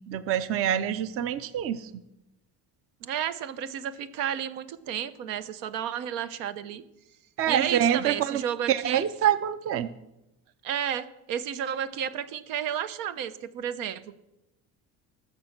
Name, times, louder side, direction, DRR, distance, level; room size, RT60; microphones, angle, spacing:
voice 1, 0.1-1.9 7.4-8.4 8.7-9.9, right 10 dB, 40° right, 14 dB, 0.6 m, -26 dB
voice 2, 3.0-6.8 7.5-9.1 10.6-14.2, right 9 dB, 85° right, 13 dB, 0.9 m, -32 dB
20.0 x 6.9 x 6.0 m, 0.92 s
cardioid pair, 145°, 34 cm